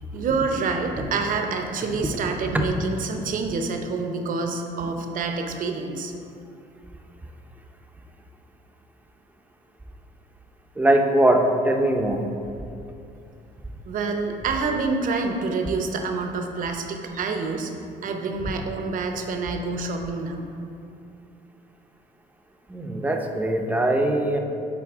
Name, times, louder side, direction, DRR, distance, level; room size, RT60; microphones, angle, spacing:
voice 1, 0.1-6.1 13.9-17.7 18.0-20.4, right 4 dB, 55° right, 4 dB, 0.7 m, -27 dB
voice 2, 10.8-12.2 22.7-24.4, right 1 dB, 10° right, 3 dB, 0.6 m, -21 dB
8.5 x 4.0 x 3.5 m, 2.6 s
cardioid pair, 110°, 17 cm